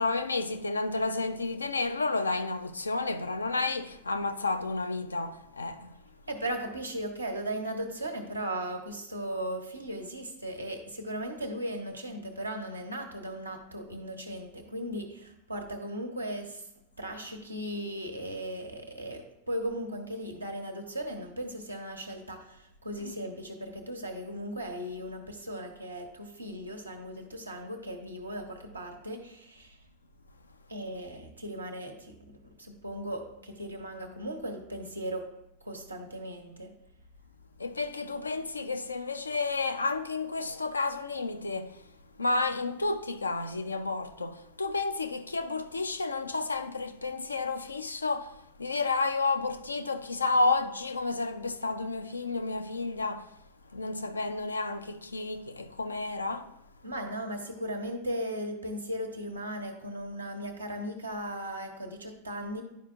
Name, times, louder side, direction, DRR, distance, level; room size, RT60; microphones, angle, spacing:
voice 1, 0.0-5.9 23.0-23.2 37.6-41.8 42.2-53.3 53.7-56.5, left 3 dB, 80° left, 0.5 m, -31 dB
voice 2, 6.3-16.6 17.0-29.8 30.7-32.2 32.6-35.3 35.6-36.7 56.8-62.6, right 1 dB, 80° right, 1.0 m, -37 dB
11.0 x 4.9 x 2.4 m
figure-of-eight pair, 90°, 0 cm